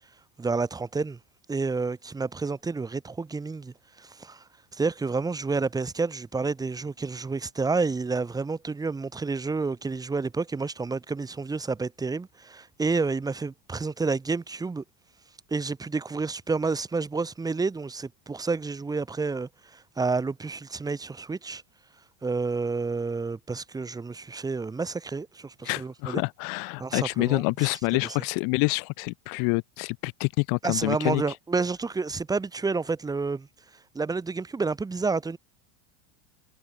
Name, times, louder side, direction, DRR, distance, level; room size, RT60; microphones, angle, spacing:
voice 1, 0.4-1.2 1.5-4.4 4.7-14.8 15.5-21.6 22.2-26.2 26.8-27.4 30.6-33.5 33.9-35.4, right 4 dB, 5° right, 2.3 m, -29 dB
voice 2, 25.6-31.2, left 34 dB, 40° left, 2.4 m, -27 dB
supercardioid pair, 180°, 49 cm